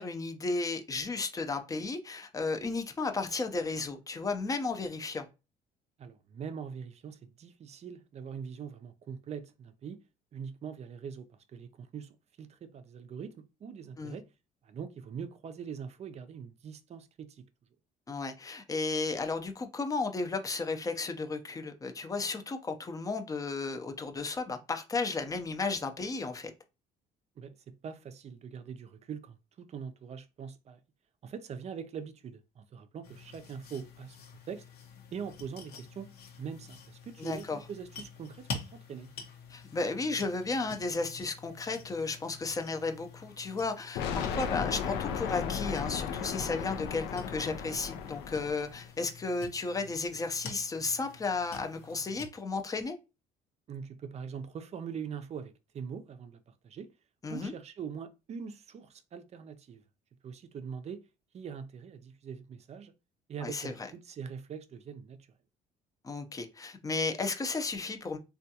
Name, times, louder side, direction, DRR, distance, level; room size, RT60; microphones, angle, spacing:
voice 1, 0.0-5.3 14.0-14.2 18.1-26.5 37.2-37.6 39.5-53.0 57.2-57.5 63.4-63.7 66.0-68.2, left 3 dB, 20° left, 0.5 m, -34 dB
voice 2, 6.0-10.0 10.3-11.3 11.5-14.2 14.6-17.4 27.4-27.6 27.8-30.8 31.2-34.2 34.5-34.6 35.1-36.1 36.4-39.1 53.7-56.9 57.3-59.8 60.2-61.0 61.3-62.9 63.3-65.2, right 7 dB, 40° right, 0.5 m, -42 dB
sound 1, 33.0-52.3, left 4 dB, 70° left, 0.9 m, -48 dB
sound 2, 44.0-48.8, left 7 dB, 85° left, 0.5 m, -35 dB
3.4 x 2.3 x 2.7 m
cardioid pair, 110°, 17 cm